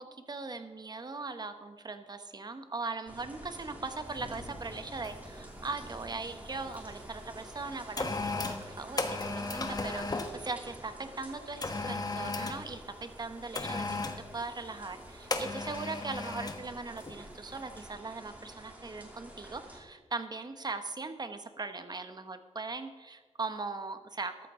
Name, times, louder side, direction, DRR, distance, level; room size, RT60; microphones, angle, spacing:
voice 1, 0.0-13.9 14.3-24.5, right 3 dB, 35° right, 9 dB, 1.1 m, -40 dB
sound 1, 3.1-19.8, right 1 dB, 15° right, 3.0 m, -49 dB
sound 2, 4.2-4.4 5.0-5.3 5.6-6.8 7.4-10.4 11.6-12.7 13.5-14.3 15.3-16.7 17.0-17.2, left 3 dB, 35° left, 1.3 m, -35 dB
13.5 x 13.0 x 3.8 m, 1.4 s
wide cardioid pair, 95°, 12 cm